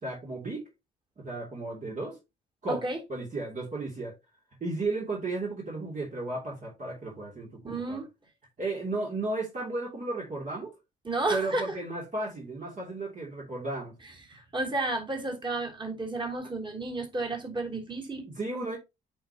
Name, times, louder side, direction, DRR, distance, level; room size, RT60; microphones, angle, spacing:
voice 1, 0.0-0.7 1.2-2.2 2.6-2.8 3.1-4.1 4.6-8.0 8.6-10.7 11.3-14.0 18.3-18.8, right 2 dB, 40° right, 3.0 m, -34 dB
voice 2, 2.7-3.0 7.6-8.1 11.0-11.8 14.3-18.3, right 2 dB, 25° right, 3.3 m, -32 dB
8.5 x 5.3 x 2.9 m
cardioid pair, 90°, 20 cm